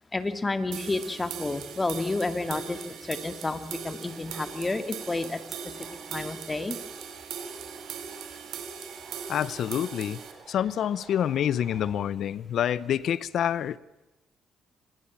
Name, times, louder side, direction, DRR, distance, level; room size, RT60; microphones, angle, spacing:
voice 1, 0.1-5.4 6.1-6.8, left 3 dB, 20° left, 9 dB, 2.1 m, -30 dB
sound 1, 0.7-10.3, right 7 dB, 80° right, 3.3 m, -40 dB
sound 2, 4.1-11.9, right 5 dB, 60° right, 4.7 m, -52 dB
voice 2, 9.3-10.2 10.5-13.8, left 10 dB, 70° left, 19 dB, 0.8 m, -27 dB
25.5 x 20.5 x 7.3 m, 1.0 s
cardioid pair, 90°, 0 cm